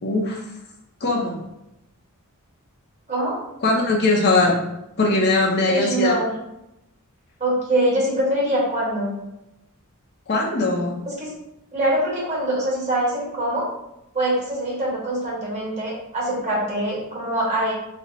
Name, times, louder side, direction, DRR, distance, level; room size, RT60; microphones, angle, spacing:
voice 1, 0.0-0.4 1.0-1.4 3.6-4.6 5.0-6.2 10.3-11.0, left 2 dB, 50° left, -1 dB, 0.7 m, -20 dB
voice 2, 5.6-6.3 7.4-9.1 11.1-11.3 11.7-13.7 14.1-17.7, right 1 dB, 30° right, -5 dB, 1.4 m, -23 dB
4.2 x 2.1 x 3.9 m, 0.87 s
head